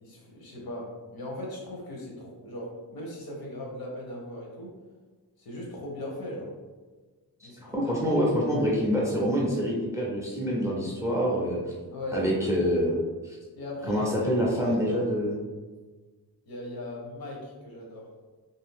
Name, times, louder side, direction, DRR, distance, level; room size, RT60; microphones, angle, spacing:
voice 1, 0.0-4.7 5.4-6.5 7.4-8.2 10.7-10.8 11.9-12.2 13.5-14.3 14.6-15.0 16.5-18.1, left 1 dB, 65° left, -1 dB, 0.8 m, -38 dB
voice 2, 7.7-11.7 12.1-12.9 13.2-13.4 13.9-15.4, equal, 10° right, -3 dB, 0.4 m, -26 dB
2.6 x 2.3 x 3.4 m, 1.3 s
wide cardioid pair, 170°, 39 cm